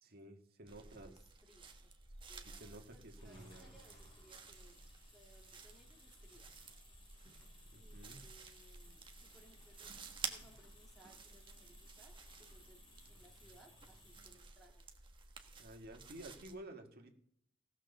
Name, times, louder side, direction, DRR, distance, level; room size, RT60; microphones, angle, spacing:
voice 1, 0.0-1.1 2.4-3.7 7.7-8.2 15.6-17.1, right 1 dB, 50° right, 4 dB, 2.0 m, -53 dB
voice 2, 0.7-1.9 2.3-4.8 5.1-6.5 7.8-10.0 10.3-14.8, right 1 dB, ahead, 0 dB, 2.3 m, -66 dB
sound 1, 0.7-16.5, right 5 dB, 25° right, 1.3 m, -52 dB
sound 2, 3.1-14.5, left 1 dB, 25° left, 4.7 m, -63 dB
16.5 x 6.3 x 6.8 m, 0.68 s
head